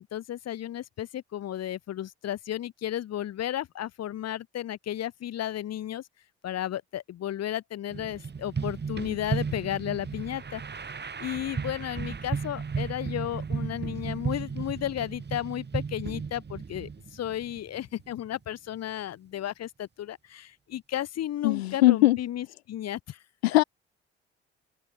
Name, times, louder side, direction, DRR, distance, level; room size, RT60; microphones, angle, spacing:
voice 1, 0.0-6.0 6.4-10.6 11.2-23.2 23.5-23.6, left 12 dB, 55° left, 4.6 m, -33 dB
sound 1, 7.9-18.3, right 5 dB, 35° right, 5.6 m, -35 dB
voice 2, 21.4-22.2 23.4-23.6, left 17 dB, 75° left, 1.9 m, -20 dB
open air
figure-of-eight pair, 45°, 31 cm